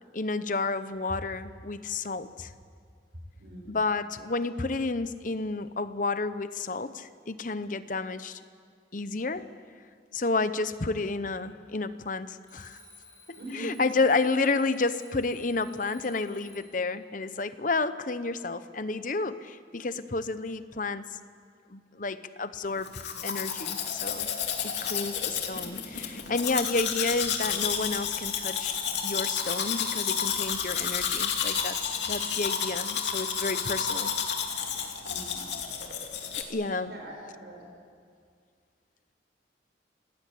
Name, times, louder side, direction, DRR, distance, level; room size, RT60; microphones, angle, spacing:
voice 1, 0.1-2.5 3.7-8.4 8.9-9.5 10.1-12.8 13.3-21.1 21.7-22.9 23.2-24.3 24.6-34.1 36.3-36.9, left 3 dB, 45° left, 12 dB, 0.9 m, -31 dB
voice 2, 3.4-3.7 13.4-13.8 35.0-35.4 36.8-37.7, right 1 dB, 65° right, -1 dB, 6.2 m, -42 dB
Alarm, 12.4-16.9, left 2 dB, 20° left, 4.5 m, -54 dB
Domestic sounds home sounds, 22.8-36.4, left 7 dB, 70° left, 2.7 m, -31 dB
27.5 x 19.0 x 8.5 m, 2.1 s
head